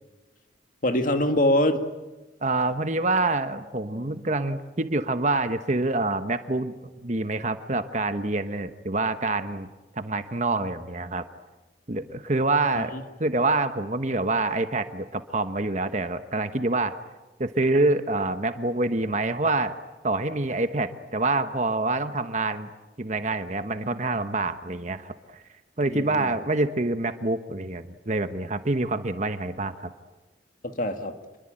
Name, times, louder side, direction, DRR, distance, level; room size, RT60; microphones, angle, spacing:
voice 1, 0.8-1.9 12.8-13.0 25.9-26.3 30.6-31.1, left 1 dB, 45° left, 6 dB, 2.1 m, -24 dB
voice 2, 2.4-6.7 7.0-9.7 9.9-11.2 11.9-12.9 13.2-17.0 17.4-19.7 20.0-22.7 23.0-25.4 25.8-29.7, right 2 dB, 40° right, 9 dB, 1.1 m, -26 dB
28.5 x 22.0 x 8.9 m, 1.2 s
head